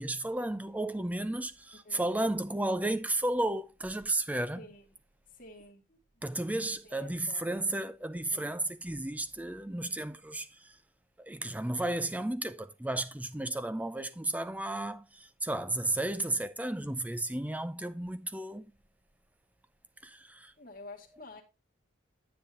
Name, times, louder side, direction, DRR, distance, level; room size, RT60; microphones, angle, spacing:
voice 1, 0.0-4.7 6.2-10.8 11.2-18.7 20.0-20.5, right 1 dB, 10° right, 0.4 m, -33 dB
voice 2, 1.8-2.5 4.5-4.8 5.4-6.0 6.8-7.4 8.3-8.6 20.6-21.4, left 2 dB, 45° left, 2.1 m, -50 dB
9.8 x 8.6 x 2.9 m
head